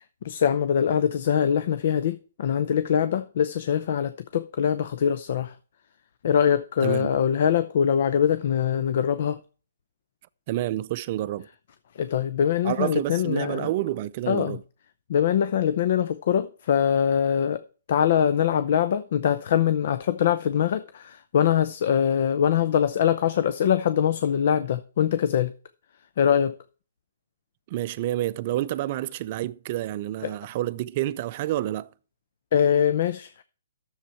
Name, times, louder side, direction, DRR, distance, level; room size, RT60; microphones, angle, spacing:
voice 1, 0.2-5.5 6.2-9.4 12.0-13.7 14.3-14.6 15.1-17.6 17.9-25.5 26.2-26.5 30.2-30.3 32.5-33.4, left 8 dB, 55° left, 0.7 m, -23 dB
voice 2, 6.8-7.1 10.5-11.5 12.6-14.6 27.7-31.9, right 14 dB, 40° right, 0.5 m, -29 dB
10.5 x 7.2 x 4.5 m
hypercardioid pair, 145°, 0 cm